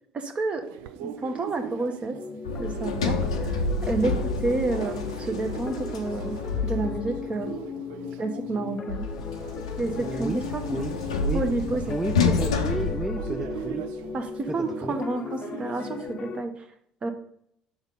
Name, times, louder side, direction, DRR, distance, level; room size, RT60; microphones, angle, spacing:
voice 1, 0.1-0.6 1.0-2.2 2.6-3.1 3.5-6.4 6.6-7.5 8.2-9.1 9.8-10.6 11.3-11.8 14.1-16.5 17.0-17.1, right 3 dB, 35° right, 5 dB, 1.0 m, -29 dB
sound 1, 0.6-16.1, right 10 dB, 70° right, 0.4 m, -42 dB
sound 2, 2.1-16.4, left 5 dB, 40° left, 0.5 m, -37 dB
Sliding door, 2.4-7.3 8.9-13.8, left 4 dB, 90° left, 0.6 m, -29 dB
voice 2, 10.0-10.4 10.7-11.4 11.8-13.8 14.5-14.9, right 2 dB, 10° right, 5 dB, 0.5 m, -32 dB
6.2 x 4.0 x 5.4 m, 0.72 s
hypercardioid pair, 65°, 3 cm